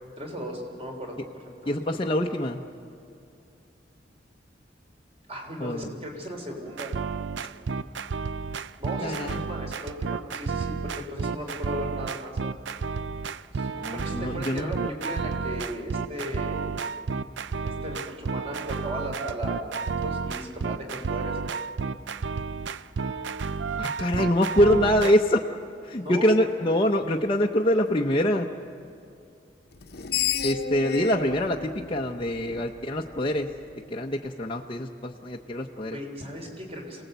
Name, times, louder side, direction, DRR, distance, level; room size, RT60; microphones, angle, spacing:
voice 1, 0.2-1.8 5.3-6.9 8.8-12.4 13.5-16.7 17.6-19.7 20.0-21.4 26.0-26.3 30.4-30.5 35.9-37.0, equal, 35° right, 1 dB, 3.7 m, -37 dB
voice 2, 1.6-2.6 5.6-5.9 9.0-9.4 13.7-14.9 23.8-25.5 25.8-28.5 30.4-33.5 33.9-36.0, left 1 dB, 30° left, 0 dB, 0.7 m, -25 dB
sound 1, 6.7-25.1, right 5 dB, 80° right, 0.5 m, -31 dB
Screech, 29.8-33.0, left 7 dB, 55° left, 1.0 m, -32 dB
27.5 x 18.5 x 8.1 m, 2.5 s
head